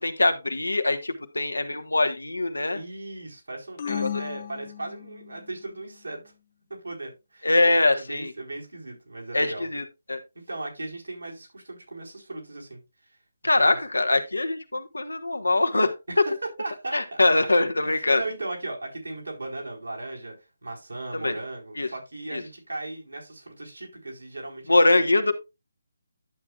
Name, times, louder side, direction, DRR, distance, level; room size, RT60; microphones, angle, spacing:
voice 1, 0.0-2.8 3.9-4.1 7.4-8.3 9.3-10.2 13.4-15.9 16.9-18.2 21.1-21.3 21.8-21.9 22.3-22.4 24.7-25.3, left 2 dB, 90° left, 8 dB, 1.4 m, -23 dB
voice 2, 2.7-6.2 6.7-9.7 10.5-12.8 13.1-13.2 13.6-13.8 16.1-16.3 16.6-17.2 17.8-20.3 20.6-25.1, right 2 dB, 85° right, -1 dB, 4.5 m, -37 dB
sound 1, 3.8-5.5, left 9 dB, 40° left, 0.6 m, -34 dB
11.5 x 7.2 x 2.4 m, 0.25 s
figure-of-eight pair, 150°, 0 cm